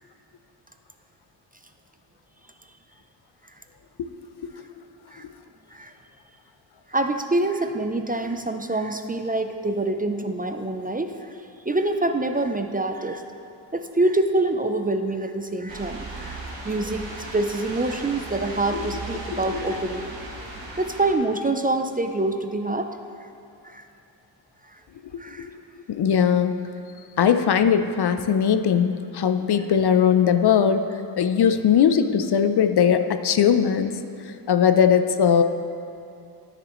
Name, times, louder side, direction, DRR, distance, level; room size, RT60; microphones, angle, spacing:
voice 1, 6.9-11.4 11.6-13.2 13.7-16.4 16.6-20.1 20.8-22.9 23.2-23.3 23.6-23.9 24.6-24.8 25.2-25.5 27.2-27.3, right 2 dB, 20° right, 6 dB, 0.5 m, -26 dB
sound 1, 15.7-21.1, right 2 dB, 75° right, 1.5 m, -36 dB
voice 2, 19.3-19.6 25.9-26.6 27.2-30.9 31.2-33.9 34.5-35.4, left 8 dB, 60° left, 9 dB, 0.6 m, -19 dB
9.9 x 9.8 x 3.1 m, 2.7 s
cardioid pair, 60°, 46 cm